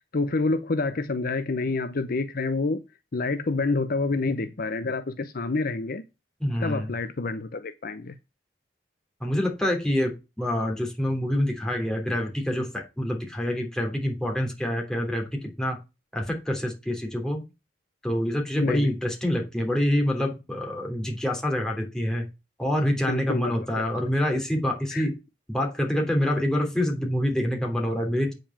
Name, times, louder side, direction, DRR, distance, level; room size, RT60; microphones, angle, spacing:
voice 1, 0.1-2.8 3.1-6.0 6.6-8.1 18.6-18.9 23.1-23.8 24.9-25.1, left 3 dB, 50° left, 0.7 m, -28 dB
voice 2, 6.4-6.9 9.2-15.3 15.6-15.8 16.1-17.4 18.0-22.3 22.6-25.2 25.5-28.3, left 1 dB, 5° left, 3.1 m, -26 dB
8.8 x 5.3 x 7.3 m
head